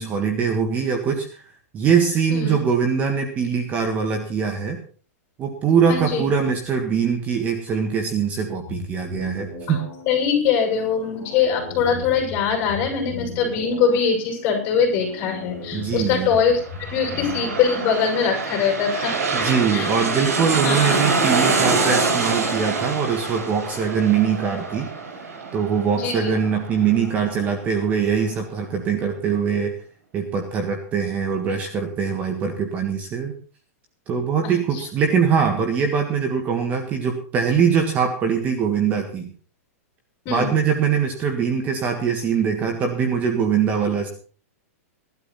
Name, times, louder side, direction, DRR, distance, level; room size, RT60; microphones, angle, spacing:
voice 1, 0.0-1.4 1.7-4.8 5.4-9.8 15.7-16.3 19.3-24.9 25.5-29.7 30.1-33.3 34.1-39.3 40.3-44.1, right 6 dB, 20° right, 4 dB, 1.6 m, -22 dB
voice 2, 5.9-6.2 10.1-16.6 16.9-19.2 19.7-19.9 20.6-21.0 25.9-26.3 34.4-34.6 40.3-40.5, left 6 dB, 25° left, 2 dB, 6.9 m, -22 dB
sound 1, 8.6-18.6, left 3 dB, 5° left, 4.5 m, -37 dB
sound 2, 16.5-27.8 28.2-28.3, right 4 dB, 80° right, 6.0 m, -25 dB
16.5 x 12.5 x 4.2 m, 0.41 s
supercardioid pair, 165°, 8 cm